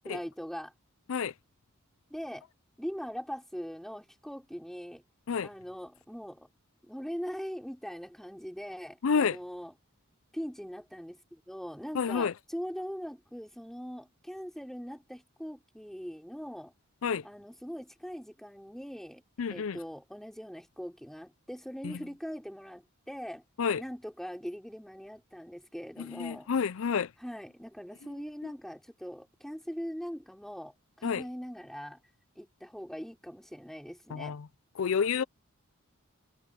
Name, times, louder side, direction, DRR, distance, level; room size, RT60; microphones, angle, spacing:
voice 1, 0.0-0.7 2.1-2.5 2.8-5.0 5.4-6.5 6.8-9.7 10.3-16.7 17.2-19.2 19.5-23.4 23.8-26.5 27.2-32.0 32.3-34.4, equal, ahead, 3.5 m, -41 dB
voice 2, 9.0-9.4 11.9-12.3 17.0-17.2 19.4-19.8 21.8-22.0 23.6-23.8 26.0-27.1 31.0-31.2 34.1-34.5 34.8-35.2, left 6 dB, 65° left, 0.5 m, -29 dB
head